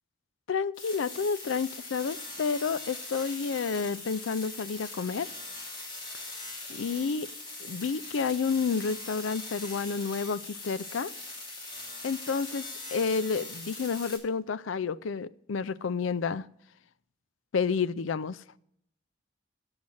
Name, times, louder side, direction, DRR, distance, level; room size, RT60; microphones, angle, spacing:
voice 1, 0.5-5.3 6.7-7.3 7.6-11.1 12.0-16.5 17.5-18.4, left 5 dB, 90° left, 0.4 m, -30 dB
sound 1, 0.7-14.2, left 2 dB, 25° left, 2.7 m, -41 dB
8.8 x 7.5 x 7.7 m
head